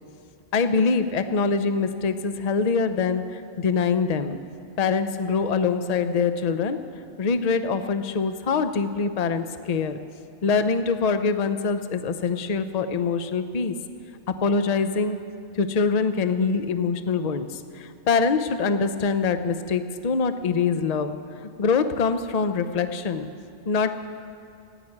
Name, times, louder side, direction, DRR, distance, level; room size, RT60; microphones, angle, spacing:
voice 1, 0.5-4.4 4.8-6.8 7.2-10.0 10.4-13.8 14.3-15.2 15.6-21.2 21.6-23.3 23.7-24.0, left 5 dB, 40° left, 10 dB, 0.6 m, -24 dB
15.0 x 9.1 x 9.7 m, 2.5 s
omnidirectional pair, 1.3 m